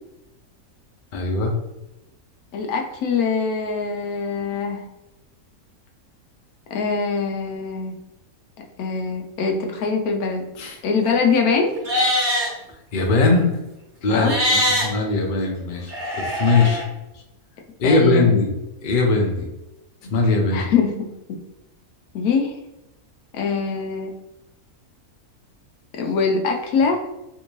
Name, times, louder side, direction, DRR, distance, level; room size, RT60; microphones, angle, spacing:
voice 1, 1.1-1.5 10.6-10.8 12.9-13.6 14.0-16.8 17.8-18.5 18.8-19.5 20.0-20.7, left 3 dB, 50° left, 1 dB, 0.7 m, -20 dB
voice 2, 2.5-4.9 6.7-7.9 8.8-10.5 10.8-11.8 14.1-14.4 17.8-18.4 20.5-21.0 21.3-21.4 22.1-22.6 23.3-24.1 25.9-27.0, left 5 dB, 90° left, 2 dB, 1.1 m, -23 dB
Livestock farm animals working animals, 11.8-12.5 14.2-14.8 15.9-16.8, left 1 dB, 35° right, 1.3 m, -22 dB
3.5 x 2.6 x 3.0 m, 0.94 s
omnidirectional pair, 1.5 m